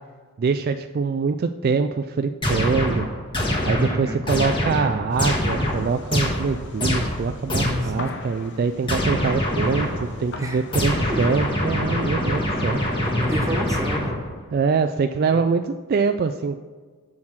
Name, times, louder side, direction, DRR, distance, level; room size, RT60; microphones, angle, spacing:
voice 1, 0.4-3.1 3.6-12.8 14.5-16.6, right 5 dB, 45° right, 8 dB, 0.3 m, -24 dB
sound 1, 2.4-8.0 8.9-10.2 10.7-14.4, left 1 dB, 20° left, 1.5 m, -25 dB
voice 2, 3.7-4.2 7.5-8.1 10.4-10.6 11.1-11.3 13.0-14.2 15.3-15.5, equal, 15° right, 4 dB, 0.8 m, -29 dB
sound 2, 5.1-13.1, left 3 dB, 55° left, 0.8 m, -41 dB
7.2 x 6.4 x 6.0 m, 1.5 s
head